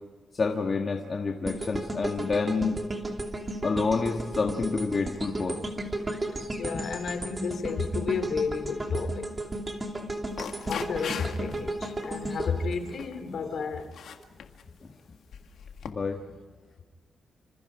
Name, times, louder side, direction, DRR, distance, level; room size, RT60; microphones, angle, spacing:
voice 1, 0.3-2.8 3.6-5.6 14.8-14.9 15.9-16.2, left 4 dB, 35° left, 2 dB, 1.7 m, -28 dB
sound 1, 1.5-13.6 14.1-14.2, right 1 dB, 20° right, 2.7 m, -34 dB
voice 2, 6.6-9.4 10.6-14.0, left 5 dB, 55° left, 8 dB, 2.7 m, -32 dB
sound 2, 10.3-11.6 12.0-12.3 12.7-13.2 13.8-14.7 15.3-15.9, left 8 dB, 75° left, 1.7 m, -39 dB
27.5 x 26.5 x 5.0 m, 1.4 s
wide cardioid pair, 155°, 0 cm